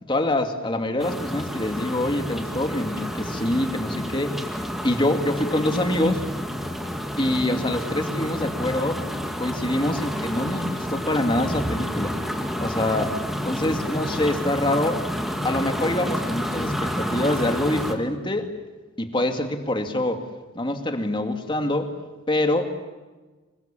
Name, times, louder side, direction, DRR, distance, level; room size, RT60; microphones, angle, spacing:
voice 1, 0.0-4.4 4.8-6.2 7.2-9.0 9.4-12.2 12.6-13.2 13.4-15.0 15.4-18.5 19.0-20.2 20.5-21.9 22.3-22.8, left 1 dB, 25° left, 5 dB, 2.4 m, -25 dB
sound 1, 1.0-17.9, equal, ahead, 2.4 m, -29 dB
26.5 x 23.5 x 7.5 m, 1.2 s
head